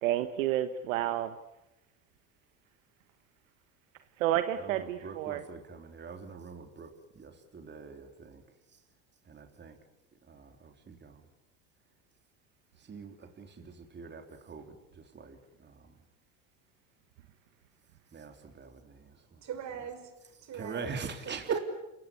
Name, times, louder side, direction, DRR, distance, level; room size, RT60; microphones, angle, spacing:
voice 1, 0.0-1.3 4.2-5.4, right 12 dB, 85° right, 10 dB, 1.3 m, -30 dB
voice 2, 4.6-8.4 9.3-9.8 10.3-11.2 12.9-15.9 18.1-19.4 20.5-21.6, right 5 dB, 30° right, 5 dB, 3.6 m, -43 dB
voice 3, 19.4-20.1 20.4-20.9 21.2-21.6, right 9 dB, 45° right, 7 dB, 6.1 m, -39 dB
29.0 x 18.0 x 9.9 m, 0.97 s
supercardioid pair, 95°, 38 cm